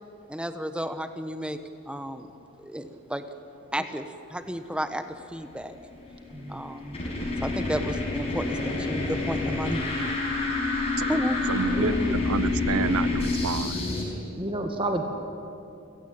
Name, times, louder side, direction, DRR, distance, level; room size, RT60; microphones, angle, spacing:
voice 1, 0.3-1.6 1.9-2.3 2.6-3.2 3.7-4.0 4.3-5.7 6.5-7.0 7.4-9.8 11.1-11.4, equal, 5° right, 9 dB, 1.2 m, -32 dB
sound 1, 5.9-14.0, left 3 dB, 30° left, 5.5 m, -28 dB
voice 2, 6.3-6.6 11.6-12.2 14.4-15.0, right 1 dB, 25° right, 4 dB, 1.7 m, -30 dB
voice 3, 11.5-13.8, right 5 dB, 90° right, 18 dB, 0.6 m, -30 dB
29.5 x 16.5 x 8.9 m, 2.7 s
head